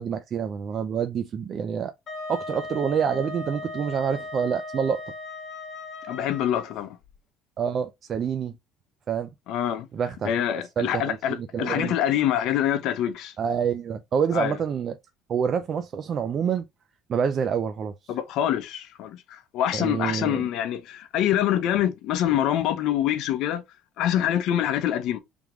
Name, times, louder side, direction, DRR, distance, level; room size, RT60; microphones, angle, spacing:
voice 1, 0.0-1.9 2.3-5.0 7.6-8.6 9.1-9.3 9.9-10.3 10.8-11.9 13.4-15.0 15.3-16.7 17.1-18.1 19.7-20.5, right 7 dB, 35° right, 0.4 m, -27 dB
Wind instrument woodwind instrument, 2.1-6.7, left 2 dB, 30° left, 1.6 m, -37 dB
voice 2, 6.1-7.0 9.5-9.9 10.2-13.3 14.3-14.6 18.1-23.6 24.0-25.2, left 11 dB, 60° left, 0.7 m, -25 dB
3.5 x 3.0 x 4.8 m
cardioid pair, 155°, 0 cm